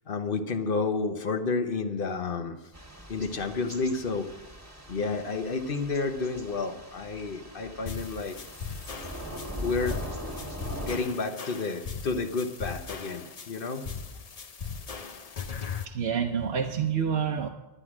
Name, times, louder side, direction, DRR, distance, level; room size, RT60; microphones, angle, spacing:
voice 1, 0.1-2.6 3.1-4.3 4.9-8.4 9.6-10.0 10.8-13.9, left 4 dB, 60° left, 7 dB, 1.1 m, -30 dB
Thunder / Rain, 2.7-11.0, equal, 15° right, 1.5 m, -41 dB
sound 1, 7.9-15.9, left 6 dB, 40° left, 0.7 m, -39 dB
voice 2, 15.8-17.5, right 7 dB, 75° right, 2 dB, 1.0 m, -28 dB
11.0 x 10.0 x 6.1 m, 1.0 s
omnidirectional pair, 1.1 m